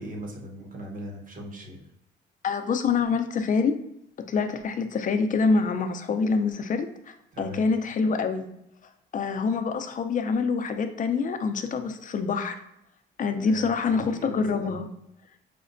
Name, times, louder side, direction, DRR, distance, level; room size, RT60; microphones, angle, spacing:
voice 1, 0.0-1.8 7.3-7.7 13.4-14.8, right 1 dB, 45° right, 0 dB, 0.9 m, -39 dB
voice 2, 2.4-3.8 4.3-8.5 9.1-12.6 13.2-14.9, left 4 dB, 40° left, 8 dB, 0.4 m, -26 dB
5.0 x 2.1 x 2.5 m, 0.79 s
cardioid pair, 90°, 20 cm